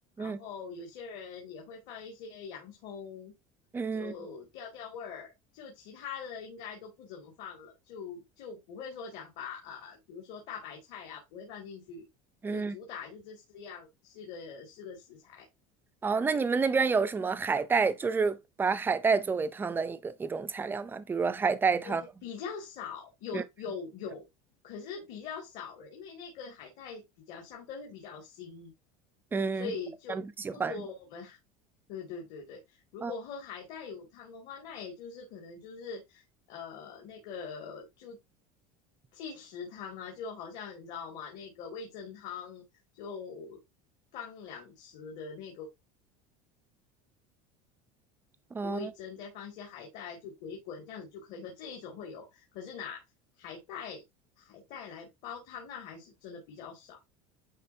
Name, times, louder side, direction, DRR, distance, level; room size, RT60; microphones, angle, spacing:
voice 1, 0.2-3.3 3.9-12.1 12.5-15.5 21.8-24.2 24.6-28.7 29.5-30.2 30.5-31.4 31.9-38.2 39.1-42.6 42.9-43.6 44.1-45.7 48.6-53.0 53.4-54.0 54.4-57.0, left 6 dB, 55° left, 2.3 m, -43 dB
voice 2, 3.7-4.1 12.4-12.7 16.0-22.0 23.3-23.4 29.3-29.7 30.1-30.7 33.0-33.1 48.5-48.9, right 5 dB, 10° right, 0.4 m, -29 dB
10.0 x 4.2 x 2.7 m
cardioid pair, 160°, 18 cm